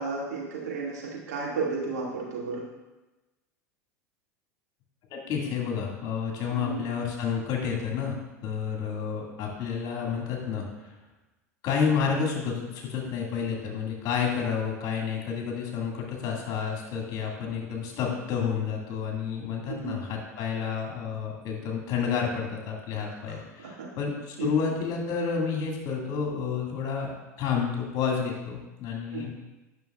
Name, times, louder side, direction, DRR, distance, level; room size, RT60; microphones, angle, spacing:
voice 1, 0.0-2.7 6.5-6.8 19.7-20.0 23.3-23.9 24.4-24.5 29.1-29.3, right 4 dB, 75° right, -3 dB, 2.0 m, -33 dB
voice 2, 5.1-10.7 11.6-27.1 27.4-29.3, left 6 dB, 45° left, -1 dB, 1.8 m, -30 dB
9.3 x 6.0 x 2.3 m, 1.1 s
hypercardioid pair, 90°, 9 cm